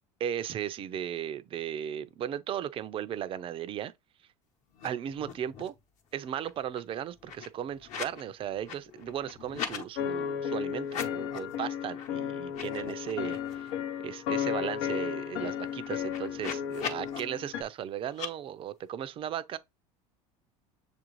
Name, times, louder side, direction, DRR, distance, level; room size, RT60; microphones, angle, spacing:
voice 1, 0.2-3.9 4.8-5.7 6.1-13.7 14.0-19.6, right 10 dB, 35° right, 0.4 m, -36 dB
sound 1, 4.7-4.9 5.1-5.8 6.1-8.2 8.5-9.8 10.8-11.5 11.9-12.1 12.4-13.8 14.2-14.3 14.5-17.2 18.1-18.3, left 7 dB, 50° left, 0.9 m, -41 dB
sound 2, 10.0-17.6, left 8 dB, 80° left, 0.7 m, -34 dB
6.5 x 2.5 x 3.1 m
supercardioid pair, 110°, 15 cm